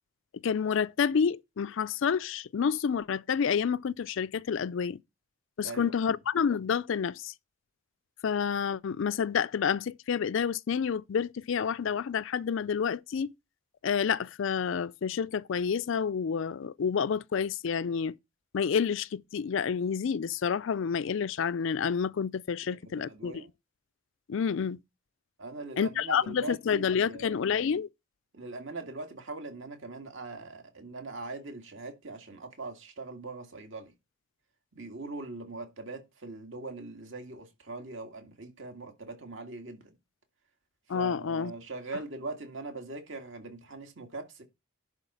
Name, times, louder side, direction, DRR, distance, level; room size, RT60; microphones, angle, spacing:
voice 1, 0.4-5.0 5.6-7.3 8.2-13.3 13.8-18.2 18.5-23.4 24.3-24.8 25.8-27.9 40.9-41.5, left 6 dB, 65° left, 0.4 m, -29 dB
voice 2, 5.6-5.9 22.7-23.5 25.4-27.4 28.3-33.9 34.8-39.9 40.9-44.4, right 3 dB, 65° right, 2.1 m, -41 dB
11.0 x 4.1 x 5.5 m
head